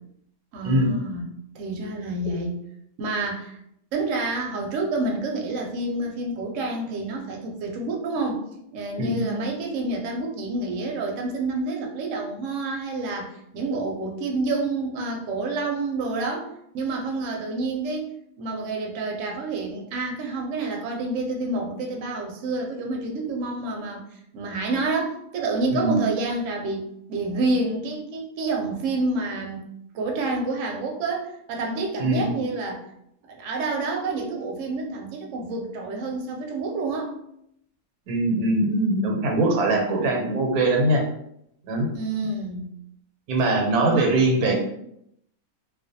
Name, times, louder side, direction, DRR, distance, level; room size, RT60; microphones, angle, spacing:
voice 1, 0.5-1.3 1.5-2.6 3.0-3.6 3.9-8.4 8.7-24.0 24.3-29.7 29.9-32.8 33.3-37.1 41.9-42.7 43.9-44.1 44.5-44.6, right 3 dB, 70° right, 1 dB, 0.8 m, -28 dB
voice 2, 9.0-9.3 25.7-26.1 32.0-32.2 38.1-41.0 41.7-41.9 43.3-44.6, right 2 dB, 90° right, 1 dB, 1.1 m, -22 dB
2.4 x 2.1 x 2.6 m, 0.75 s
omnidirectional pair, 1.5 m